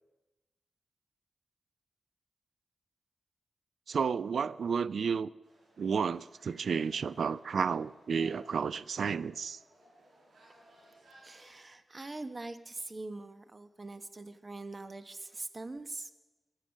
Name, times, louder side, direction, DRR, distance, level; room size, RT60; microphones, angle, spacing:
voice 1, 3.9-5.3 5.8-9.6, right 6 dB, 75° right, 0.4 m, -31 dB
sound 1, 5.4-11.5, right 1 dB, 90° right, 5.9 m, -60 dB
voice 2, 11.2-16.1, right 2 dB, 30° right, 1.0 m, -43 dB
16.0 x 11.5 x 6.4 m
wide cardioid pair, 90°, 0 cm